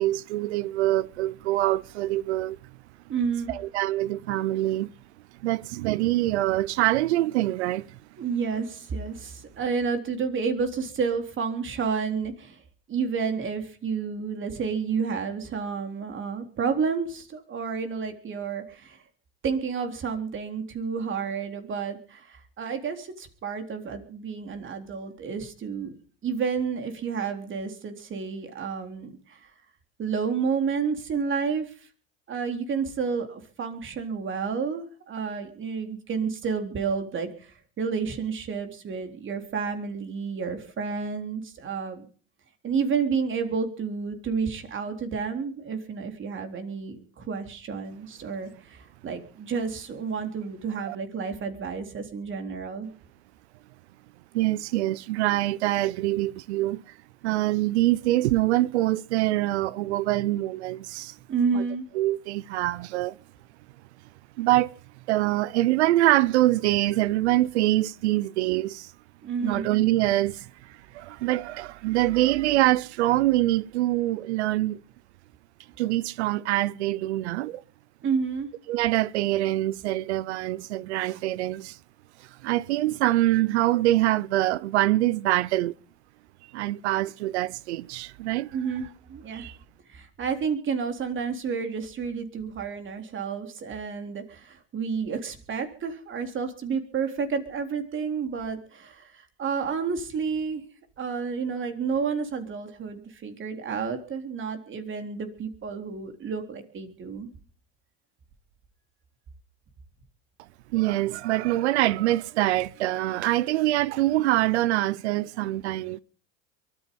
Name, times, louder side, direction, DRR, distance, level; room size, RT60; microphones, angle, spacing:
voice 1, 0.0-2.6 3.5-4.9 5.4-7.9 50.9-51.0 54.3-56.8 57.2-61.1 61.5-61.6 61.9-63.2 64.4-64.7 65.1-68.9 69.4-70.5 70.9-74.8 75.8-77.6 78.7-81.8 82.4-85.7 86.5-88.5 89.3-89.6 110.7-116.0, right 16 dB, 80° right, 0.8 m, -24 dB
voice 2, 3.1-3.5 8.2-12.6 12.9-19.0 19.4-26.0 26.2-29.5 30.0-31.7 32.3-42.1 42.6-52.9 61.3-61.9 69.2-69.7 78.0-78.5 88.5-89.5 89.9-100.6 101.0-107.3, right 5 dB, 35° right, 3.7 m, -30 dB
23.5 x 10.0 x 5.4 m
supercardioid pair, 100°, 33 cm